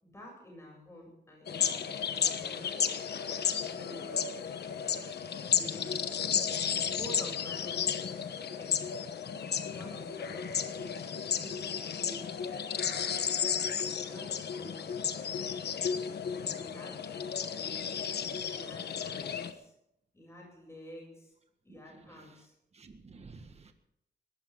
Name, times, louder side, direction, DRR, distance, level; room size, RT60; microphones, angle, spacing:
voice 1, 0.0-2.8 3.6-4.4 5.4-6.1 6.8-8.0 8.3-9.0 9.7-12.3 13.9-14.9 16.5-17.1 17.5-17.9 18.5-19.7 20.1-21.3 21.6-22.5, equal, 15° left, 7.6 m, -49 dB
sound 1, 1.5-19.5, left 7 dB, 75° left, 1.2 m, -33 dB
voice 2, 21.7-22.4 22.7-23.7, right 4 dB, 40° right, 1.6 m, -53 dB
21.0 x 15.5 x 3.8 m
wide cardioid pair, 125°, 17 cm